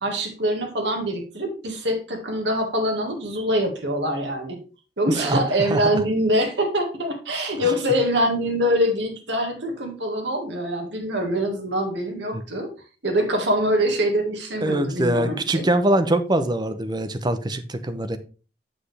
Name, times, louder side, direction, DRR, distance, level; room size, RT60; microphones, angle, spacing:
voice 1, 0.0-4.6 5.0-12.7 13.0-15.7, equal, 75° right, 3 dB, 1.8 m, -24 dB
voice 2, 5.1-5.4 5.7-5.9 12.3-12.4 14.6-18.2, right 1 dB, 25° right, 9 dB, 0.7 m, -23 dB
7.7 x 6.3 x 3.3 m, 0.35 s
head